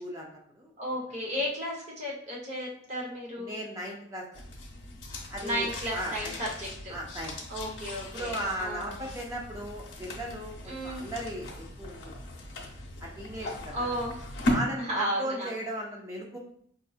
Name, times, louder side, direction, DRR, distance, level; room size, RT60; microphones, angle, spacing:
voice 1, 0.0-0.7 3.4-4.3 5.3-6.4 6.9-7.4 8.1-12.1 13.0-13.9 14.4-16.4, right 1 dB, 15° right, -2 dB, 0.5 m, -37 dB
voice 2, 0.8-3.5 5.4-6.9 7.5-9.1 10.7-11.0 13.4-14.1 14.8-15.5, equal, 35° right, -4 dB, 0.9 m, -34 dB
sound 1, 4.3-14.6, left 1 dB, 65° left, 0.8 m, -38 dB
4.4 x 2.6 x 2.4 m, 0.64 s
head